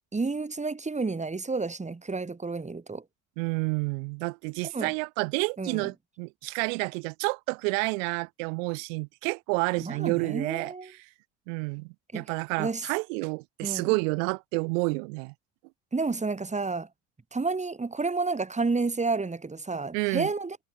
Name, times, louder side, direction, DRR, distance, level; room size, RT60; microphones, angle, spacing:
voice 1, 0.1-3.0 4.7-4.9 5.6-5.9 9.8-10.9 12.1-12.3 12.6-12.9 13.6-14.0 15.9-16.9 17.3-20.6, right 3 dB, 20° right, 3.0 m, -30 dB
voice 2, 3.4-10.7 11.5-15.3 19.9-20.3, right 33 dB, 75° right, 3.7 m, -29 dB
hypercardioid pair, 65°, 39 cm